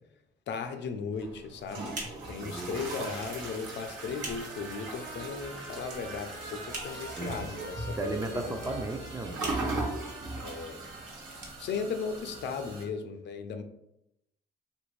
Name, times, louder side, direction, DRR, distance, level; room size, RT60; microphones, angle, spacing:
voice 1, 0.5-1.9 2.3-8.4 10.4-10.8 11.6-13.6, left 5 dB, 65° left, 7 dB, 0.5 m, -36 dB
sound 1, 1.1-12.4, right 2 dB, 40° right, 1.2 m, -46 dB
sound 2, 1.1-12.8, right 2 dB, 90° right, 1.0 m, -39 dB
voice 2, 2.4-3.1 7.2-7.5 7.9-9.5, right 2 dB, 15° right, 4 dB, 0.4 m, -35 dB
Trumpet, 4.0-11.4, right 2 dB, 70° right, 0.7 m, -47 dB
3.1 x 2.5 x 3.1 m, 0.82 s
cardioid pair, 90°, 20 cm